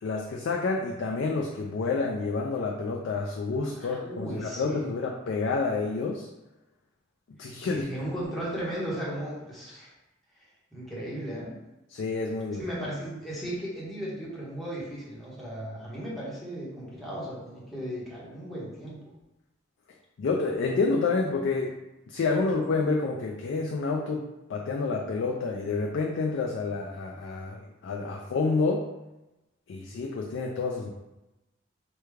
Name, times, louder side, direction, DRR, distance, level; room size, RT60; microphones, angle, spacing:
voice 1, 0.0-6.3 7.4-7.9 11.9-12.6 20.2-21.8 22.1-24.2 24.5-28.8 29.7-30.9, left 4 dB, 65° left, 0 dB, 0.3 m, -29 dB
voice 2, 3.7-5.0 7.7-9.9 10.4-11.6 12.5-19.1, right 1 dB, ahead, -7 dB, 0.9 m, -36 dB
3.4 x 2.2 x 3.2 m, 0.98 s
head